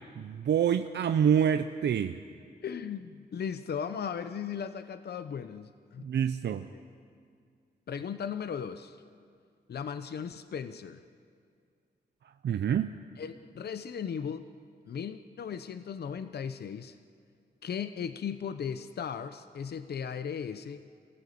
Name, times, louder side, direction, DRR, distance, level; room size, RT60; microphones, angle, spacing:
voice 1, 0.2-2.2 6.0-6.7 12.4-12.9, right 8 dB, 90° right, 9 dB, 0.6 m, -26 dB
voice 2, 2.6-6.1 6.7-6.8 7.9-9.0 9.7-11.0 13.2-14.5 14.9-17.0 17.6-20.9, left 7 dB, 70° left, 11 dB, 0.8 m, -37 dB
27.0 x 16.5 x 8.6 m, 2.2 s
wide cardioid pair, 120°, 17 cm